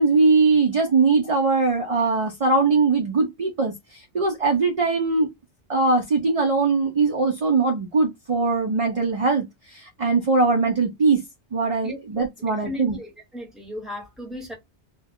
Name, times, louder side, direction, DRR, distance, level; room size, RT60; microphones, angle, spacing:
voice 1, 0.0-5.3 5.7-11.2 11.5-13.0, right 4 dB, 45° right, 0.4 m, -21 dB
voice 2, 12.4-14.5, left 1 dB, ahead, 0.9 m, -36 dB
2.3 x 2.2 x 3.4 m
omnidirectional pair, 1.1 m